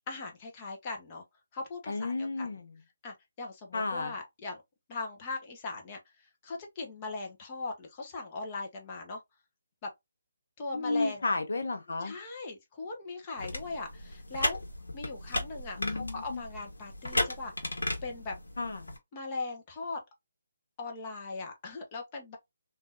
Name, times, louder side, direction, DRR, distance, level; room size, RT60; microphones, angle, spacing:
voice 1, 0.1-1.2 1.5-2.5 3.0-4.6 4.9-6.0 6.4-9.2 9.8-9.9 10.6-11.2 12.0-14.6 14.9-17.5 18.0-18.3 19.1-20.0 20.8-22.4, left 3 dB, 30° left, 1.0 m, -39 dB
voice 2, 1.9-2.7 3.7-4.1 10.7-12.1 15.8-16.4 18.6-18.9, left 3 dB, 65° left, 1.1 m, -32 dB
sound 1, 13.4-19.0, left 2 dB, 80° left, 1.3 m, -35 dB
3.7 x 2.7 x 2.4 m
figure-of-eight pair, 150°, 0 cm